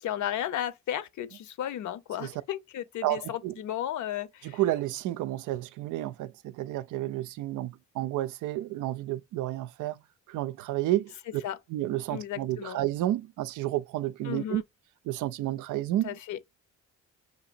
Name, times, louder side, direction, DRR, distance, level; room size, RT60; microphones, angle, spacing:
voice 1, 0.0-4.6 11.4-11.6 12.1-12.8 14.2-14.6 16.0-16.4, left 11 dB, 75° left, 0.9 m, -34 dB
voice 2, 3.0-3.6 4.4-10.0 10.3-11.4 11.7-14.6 15.1-16.2, right 14 dB, 80° right, 0.5 m, -31 dB
6.5 x 2.9 x 2.5 m
cardioid pair, 90°, 30 cm